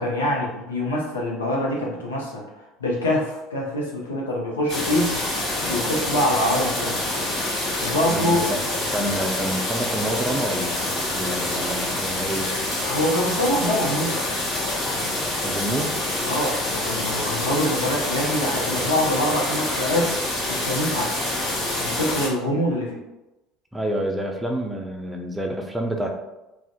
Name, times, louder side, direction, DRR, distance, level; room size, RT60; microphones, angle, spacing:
voice 1, 0.0-2.4 2.8-5.2 5.6-7.0 7.8-8.5 12.8-14.2 16.2-20.1 20.5-21.1 21.8-23.0, left 1 dB, 85° left, -2 dB, 0.5 m, -24 dB
sound 1, 4.7-22.3, left 1 dB, 50° left, 1.1 m, -26 dB
voice 2, 8.1-8.6 8.9-12.6 15.4-15.9 23.7-26.2, right 1 dB, 10° right, 2 dB, 0.4 m, -28 dB
2.5 x 2.0 x 2.4 m, 1.0 s
figure-of-eight pair, 65°, 0 cm